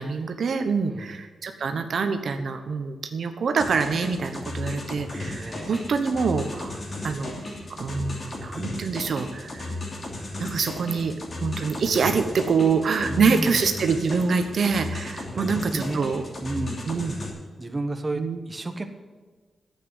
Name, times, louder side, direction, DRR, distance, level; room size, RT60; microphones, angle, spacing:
voice 1, 0.0-7.4 7.8-9.7 10.4-11.1 11.4-16.2 16.9-17.1 18.2-18.4, right 5 dB, 60° right, 7 dB, 1.1 m, -25 dB
sound 1, 3.6-17.3, left 2 dB, 40° left, 2.9 m, -35 dB
voice 2, 5.3-5.9 13.0-13.6 15.3-16.1 16.4-16.8 17.6-18.9, right 2 dB, 20° right, 5 dB, 1.2 m, -32 dB
10.0 x 8.5 x 9.4 m, 1.4 s
wide cardioid pair, 135°, 0 cm